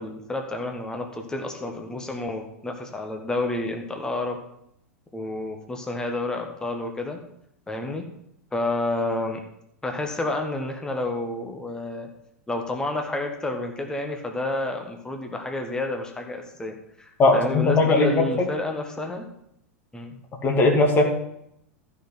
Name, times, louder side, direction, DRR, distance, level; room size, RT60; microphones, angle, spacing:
voice 1, 0.0-4.4 5.1-7.2 7.7-8.1 8.5-9.4 9.8-12.1 12.5-19.3 19.9-20.2, left 2 dB, 10° left, 3 dB, 1.4 m, -30 dB
voice 2, 17.2-18.3 20.4-21.2, left 2 dB, 25° left, 1 dB, 2.5 m, -19 dB
13.5 x 6.0 x 6.1 m, 0.74 s
figure-of-eight pair, 90°, 8 cm